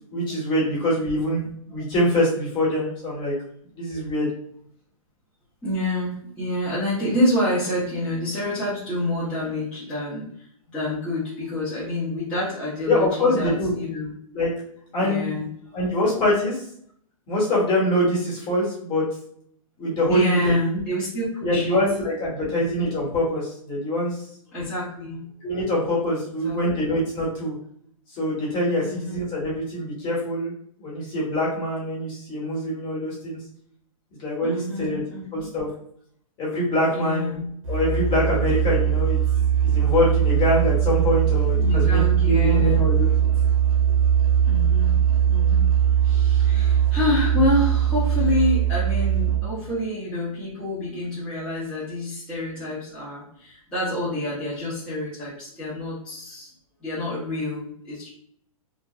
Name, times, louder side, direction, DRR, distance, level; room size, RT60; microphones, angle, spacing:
voice 1, 0.1-1.4 1.7-3.3 3.7-4.3 12.9-13.7 14.3-14.5 14.9-15.4 15.7-16.6 17.3-19.1 19.8-20.8 21.4-24.2 25.4-27.5 28.2-30.5 30.8-33.4 34.2-35.0 35.3-35.7 36.4-37.4 37.7-39.2 39.6-43.3, left 1 dB, 25° left, -6 dB, 1.1 m, -24 dB
voice 2, 5.6-14.1 15.0-15.8 20.1-21.8 22.6-22.7 24.5-25.6 26.4-26.9 28.8-29.2 34.4-35.5 36.9-37.5 41.6-42.9 44.5-45.0 45.3-45.7 46.0-56.5 56.8-58.1, left 1 dB, 5° left, -11 dB, 0.9 m, -28 dB
Musical instrument, 37.6-49.7, right 9 dB, 75° right, 0.7 m, -20 dB
3.0 x 2.2 x 2.3 m, 0.65 s
hypercardioid pair, 145°, 18 cm